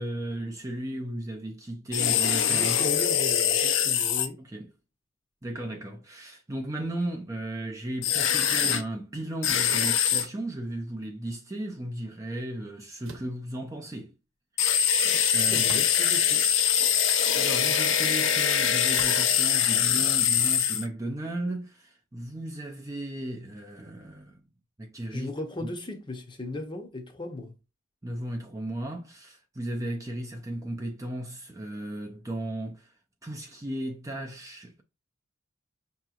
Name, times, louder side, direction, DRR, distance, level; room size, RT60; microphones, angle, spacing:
voice 1, 0.0-3.0 4.4-4.7 5.4-14.1 14.6-14.9 15.3-15.8 17.3-24.4 24.8-25.3 25.6-25.7 28.0-32.9 33.2-34.8, right 1 dB, 15° right, 0.4 m, -35 dB
sound 1, 1.9-4.3 8.0-8.8 9.4-10.3 14.6-20.9, left 8 dB, 60° left, 0.5 m, -23 dB
voice 2, 2.5-4.4 15.0-16.5 25.1-27.5, left 1 dB, 20° left, 0.7 m, -37 dB
sound 2, 13.0-13.4 15.6-16.2 16.9-17.0 18.9-19.3, right 3 dB, 70° right, 0.9 m, -43 dB
5.8 x 2.9 x 2.4 m
head